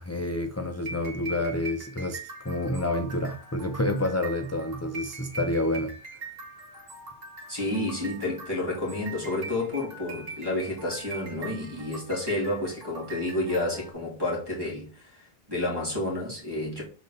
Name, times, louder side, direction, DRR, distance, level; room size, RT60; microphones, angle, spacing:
voice 1, 0.0-2.2 2.4-5.9, left 1 dB, 20° left, 0.4 m, -28 dB
sound 1, 0.7-13.9, right 3 dB, 65° right, 1.7 m, -43 dB
voice 2, 7.5-15.2 15.5-16.8, left 2 dB, 25° right, 2.6 m, -30 dB
7.0 x 3.9 x 4.0 m
omnidirectional pair, 1.0 m